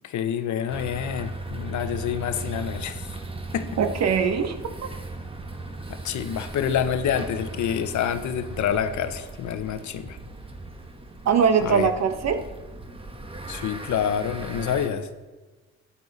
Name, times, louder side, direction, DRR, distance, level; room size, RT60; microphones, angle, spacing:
voice 1, 0.0-3.0 3.5-3.7 5.9-10.2 11.6-11.9 13.5-15.1, left 9 dB, 70° left, 10 dB, 0.9 m, -27 dB
sound 1, 0.7-14.9, right 2 dB, 20° right, 1.3 m, -37 dB
voice 2, 3.8-4.7 11.2-12.4, right 6 dB, 60° right, 8 dB, 1.2 m, -22 dB
13.5 x 9.8 x 4.1 m, 1.3 s
cardioid pair, 90°, 30 cm